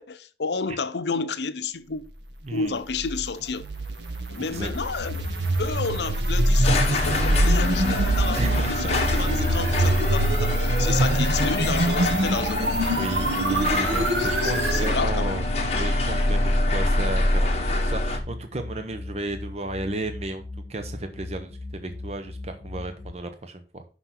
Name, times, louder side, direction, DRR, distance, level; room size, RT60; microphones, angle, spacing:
voice 1, 0.0-2.0 2.5-3.6 4.3-5.3 5.6-12.8 14.2-15.4, left 4 dB, 80° left, 0.7 m, -31 dB
voice 2, 2.4-2.8 4.4-4.7 8.4-9.5 12.9-15.5 15.7-20.4 20.7-23.9, right 2 dB, 35° right, 0.7 m, -33 dB
sound 1, 2.8-14.9, right 1 dB, 85° right, 1.1 m, -25 dB
sound 2, 4.5-18.2, left 1 dB, 35° left, 1.2 m, -25 dB
sound 3, 5.1-23.1, left 2 dB, 20° left, 0.8 m, -39 dB
6.0 x 5.8 x 5.8 m
head